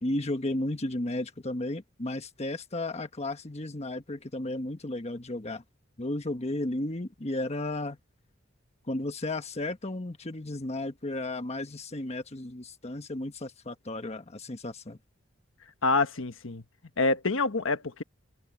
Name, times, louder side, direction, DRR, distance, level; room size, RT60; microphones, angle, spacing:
voice 1, 0.0-5.6 6.0-8.0 8.9-15.0, left 1 dB, 35° left, 1.3 m, -34 dB
voice 2, 15.8-16.6 17.0-18.0, left 3 dB, 80° left, 1.3 m, -26 dB
open air
head